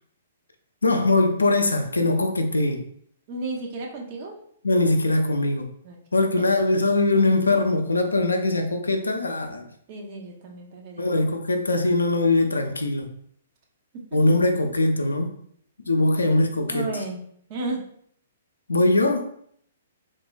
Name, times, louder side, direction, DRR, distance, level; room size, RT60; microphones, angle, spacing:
voice 1, 0.8-2.8 4.6-5.7 6.1-9.7 11.0-13.1 14.1-15.3 15.9-16.9 18.7-19.3, left 2 dB, 85° left, 0.4 m, -21 dB
voice 2, 3.3-4.4 5.8-6.2 9.9-11.1 13.9-14.0 16.7-17.2 17.5-17.8, right 2 dB, 40° right, 0.6 m, -33 dB
3.3 x 2.1 x 2.5 m
figure-of-eight pair, 120°, 0 cm